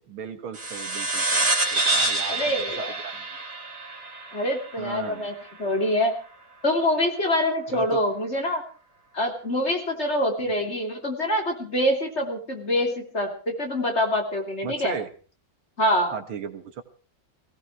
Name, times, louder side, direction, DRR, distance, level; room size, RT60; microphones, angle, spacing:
voice 1, 0.1-2.5 2.8-3.4 4.8-5.3 7.7-8.0 14.6-15.1 16.1-16.8, right 6 dB, 85° right, 9 dB, 2.3 m, -36 dB
sound 1, 0.5-5.5, right 2 dB, 50° right, 3.5 m, -27 dB
voice 2, 2.3-2.9 4.3-5.3 5.6-6.1 6.6-8.6 9.1-15.0 15.8-16.1, left 1 dB, 30° left, 3 dB, 3.2 m, -25 dB
18.0 x 17.0 x 4.7 m, 0.39 s
omnidirectional pair, 2.2 m